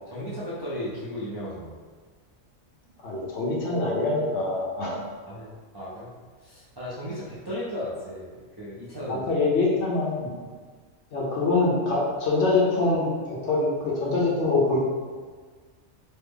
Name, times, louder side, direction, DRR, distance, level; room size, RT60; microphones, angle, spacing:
voice 1, 0.1-1.7 5.3-6.1 6.4-9.3, left 1 dB, 40° right, -9 dB, 0.3 m, -35 dB
voice 2, 3.0-5.0 9.1-10.3 11.1-14.8, left 3 dB, 70° left, -4 dB, 1.0 m, -24 dB
3.2 x 2.0 x 3.5 m, 1.5 s
omnidirectional pair, 1.3 m